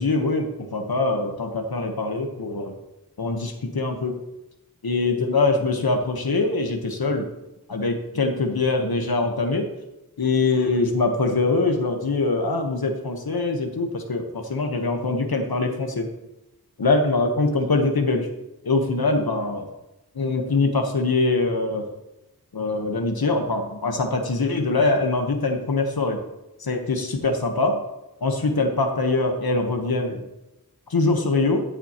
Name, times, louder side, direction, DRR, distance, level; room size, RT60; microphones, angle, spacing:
voice 1, 0.0-2.7 3.2-4.1 4.8-7.3 7.7-9.7 10.2-16.1 16.8-18.3 18.6-19.7 20.1-21.9 22.5-26.2 26.6-27.8 28.2-30.2 30.9-31.6, left 3 dB, 80° left, 3 dB, 1.2 m, -23 dB
13.5 x 6.9 x 2.9 m, 0.96 s
wide cardioid pair, 50°, 36 cm